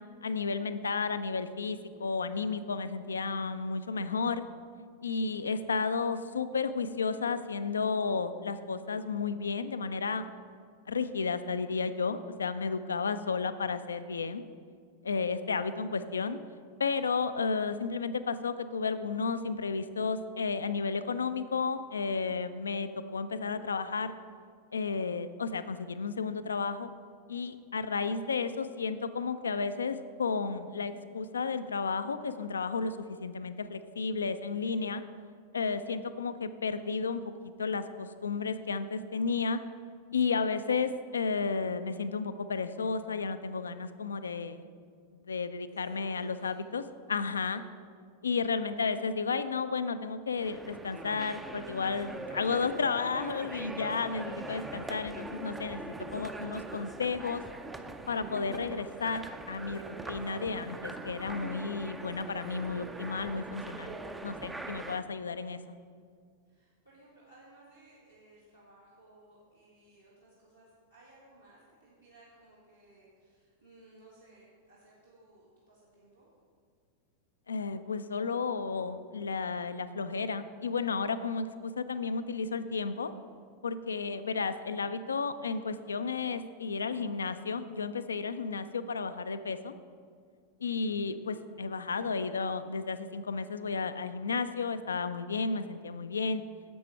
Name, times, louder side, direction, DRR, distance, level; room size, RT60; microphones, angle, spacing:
voice 1, 0.2-4.4 5.0-10.3 10.9-14.4 15.0-16.4 16.8-24.1 24.7-26.9 27.3-35.0 35.5-37.3 37.6-39.6 40.1-44.6 45.3-46.8 47.1-47.6 48.2-57.4 58.1-64.0 64.2-65.6 77.5-83.1 83.6-89.7 90.6-96.4, left 4 dB, 70° left, 11 dB, 0.4 m, -32 dB
voice 2, 45.7-46.6 66.5-76.3, right 2 dB, 85° right, -8 dB, 1.8 m, -59 dB
sound 1, 50.4-65.0, right 2 dB, 10° right, 0.5 m, -42 dB
11.0 x 7.5 x 4.4 m, 2.1 s
figure-of-eight pair, 90°, 0 cm